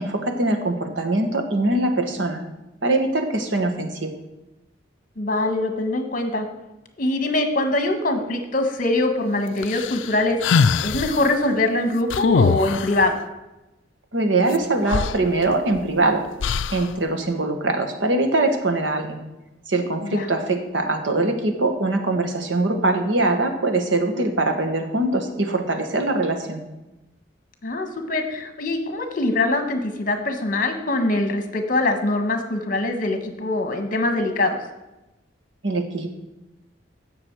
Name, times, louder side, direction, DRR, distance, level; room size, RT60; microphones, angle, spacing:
voice 1, 0.0-2.4 2.8-4.1 14.1-16.2 16.7-19.2 19.7-26.6 35.6-36.1, right 2 dB, 90° right, 5 dB, 1.5 m, -22 dB
voice 2, 5.2-6.5 7.0-13.2 20.0-20.3 27.6-34.6, left 2 dB, 50° left, 7 dB, 1.4 m, -23 dB
sound 1, 9.6-11.2 12.1-13.0 14.5-14.6 14.9-15.9 16.4-16.9, left 5 dB, 90° left, 0.4 m, -22 dB
16.0 x 6.3 x 4.7 m, 1.0 s
head